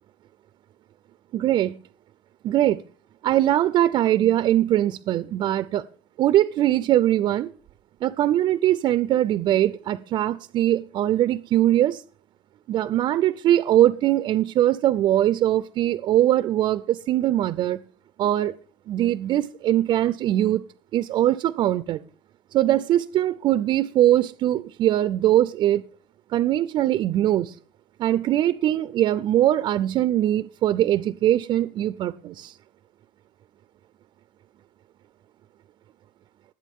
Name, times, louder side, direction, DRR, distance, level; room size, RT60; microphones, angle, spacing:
voice 1, 1.3-1.7 2.4-2.8 3.2-5.8 6.2-7.5 8.0-12.0 12.7-17.8 18.2-18.5 18.9-20.6 20.9-22.0 22.5-25.9 26.3-27.6 28.0-32.6, right 13 dB, 35° right, 0.4 m, -21 dB
20.0 x 8.1 x 3.6 m
cardioid pair, 155°, 13 cm